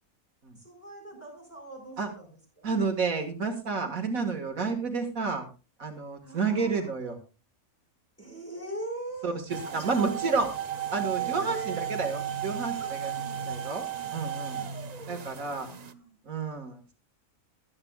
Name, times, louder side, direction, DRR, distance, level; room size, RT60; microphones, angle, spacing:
voice 1, 0.6-2.7 3.7-4.0 4.5-4.7 6.2-6.9 8.2-9.4 9.6-10.5 11.1-11.9 12.8-13.5 13.9-14.2 14.5-14.8 15.4-16.2, right 2 dB, 10° left, 0 dB, 5.0 m, -42 dB
voice 2, 2.6-5.5 5.8-7.2 9.2-10.5 10.9-13.1 13.5-13.8 14.1-14.6 15.1-15.7 16.3-16.9, right 4 dB, 75° right, 4 dB, 2.1 m, -30 dB
sound 1, 9.5-15.9, right 9 dB, 45° right, 0.5 m, -34 dB
22.5 x 8.7 x 2.3 m, 0.31 s
omnidirectional pair, 1.5 m